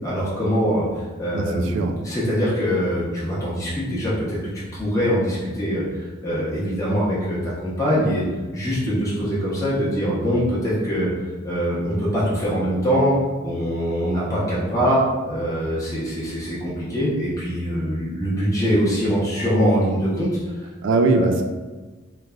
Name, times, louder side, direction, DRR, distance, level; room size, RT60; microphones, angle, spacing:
voice 1, 0.0-0.8 1.2-5.8 6.2-8.2 8.5-11.1 11.4-13.2 13.4-20.3 20.9-21.3, equal, 15° left, -8 dB, 0.8 m, -23 dB
voice 2, 1.3-2.0 20.8-21.4, right 3 dB, 60° right, 5 dB, 0.3 m, -20 dB
3.1 x 2.3 x 2.3 m, 1.3 s
head